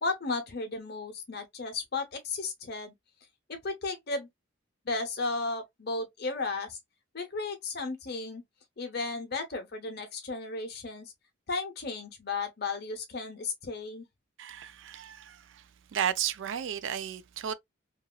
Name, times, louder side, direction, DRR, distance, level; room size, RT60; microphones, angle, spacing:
voice 1, 0.0-2.9 3.5-4.3 4.9-6.8 7.1-8.4 8.8-11.1 11.5-14.1, left 3 dB, 50° left, 0.8 m, -34 dB
voice 2, 14.4-15.6 15.9-17.5, right 9 dB, 65° right, 0.3 m, -33 dB
2.9 x 2.7 x 2.2 m
head